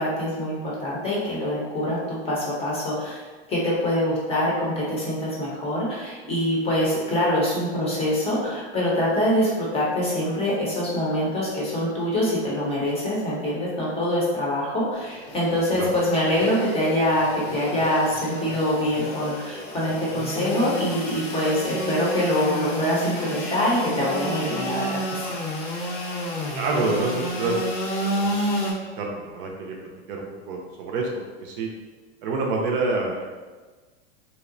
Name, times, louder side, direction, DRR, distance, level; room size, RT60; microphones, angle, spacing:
voice 1, 0.0-3.2 3.5-25.3, left 1 dB, 15° left, -5 dB, 0.6 m, -24 dB
Engine / Sawing, 14.9-28.7, equal, 85° left, 0.8 m, -31 dB
voice 2, 26.5-27.6 28.1-28.3 28.6-28.7 29.0-29.8 30.1-31.7 32.2-33.3, right 3 dB, 55° right, 0 dB, 0.5 m, -27 dB
2.8 x 2.1 x 2.5 m, 1.4 s
hypercardioid pair, 125°, 34 cm